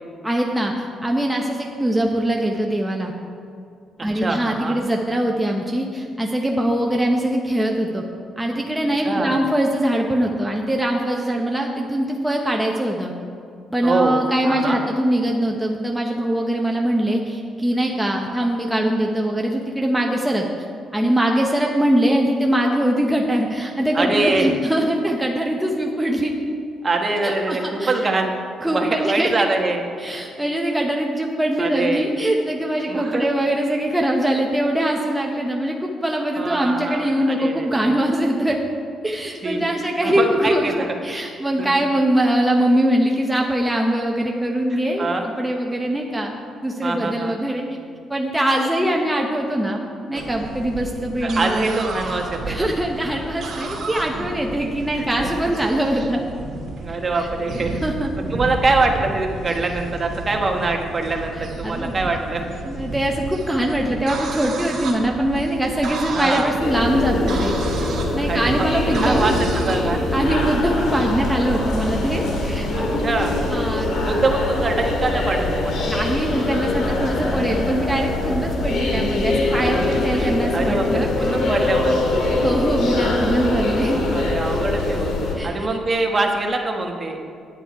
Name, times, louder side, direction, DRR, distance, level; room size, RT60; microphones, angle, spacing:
voice 1, 0.2-3.1 4.0-8.0 8.4-13.1 13.7-20.5 20.9-26.3 27.1-28.0 28.6-29.3 30.0-38.6 39.0-40.7 41.0-47.7 48.1-51.8 52.5-56.2 57.2-57.3 57.8-58.1 61.3-61.9 62.6-69.3 70.1-72.7 73.5-74.1 75.9-81.3 82.4-84.0 85.3-85.6, right 1 dB, 5° right, 0 dB, 0.9 m, -22 dB
voice 2, 4.0-4.8 9.0-9.3 13.8-14.2 14.4-14.8 23.9-24.5 26.8-28.4 28.7-29.8 31.6-32.0 32.9-33.3 36.4-37.9 39.4-39.6 40.0-41.3 41.6-41.8 44.7-45.2 46.8-47.4 50.1-50.2 51.2-52.7 54.9-55.3 56.8-57.8 58.2-62.6 66.1-66.5 68.2-70.0 72.7-73.3 74.0-75.9 79.7-79.8 80.1-82.4 83.9-85.1 85.4-87.2, right 3 dB, 35° right, 3 dB, 1.3 m, -24 dB
sound 1, 50.2-69.9, right 3 dB, 60° right, 1.8 m, -32 dB
sound 2, 66.6-85.3, left 2 dB, 75° left, 1.9 m, -23 dB
9.7 x 9.0 x 4.7 m, 2.4 s
cardioid pair, 90°, 0 cm